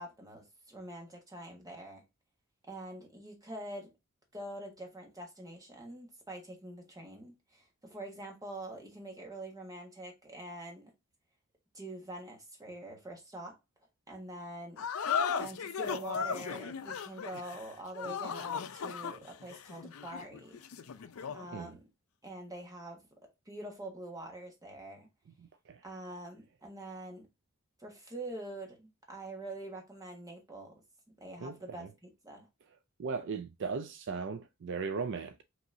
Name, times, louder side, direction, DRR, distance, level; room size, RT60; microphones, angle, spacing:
voice 1, 0.0-2.0 2.7-3.9 4.3-10.9 11.7-13.6 14.1-15.1 15.4-20.6 21.3-21.8 22.2-23.0 23.5-25.1 25.8-27.3 27.8-30.8 31.2-32.5, right 1 dB, 15° right, 1.4 m, -45 dB
sound 1, 14.8-21.5, left 6 dB, 70° left, 0.5 m, -36 dB
voice 2, 31.4-31.9 33.0-35.4, right 5 dB, 60° right, 0.4 m, -37 dB
5.3 x 3.0 x 2.6 m
head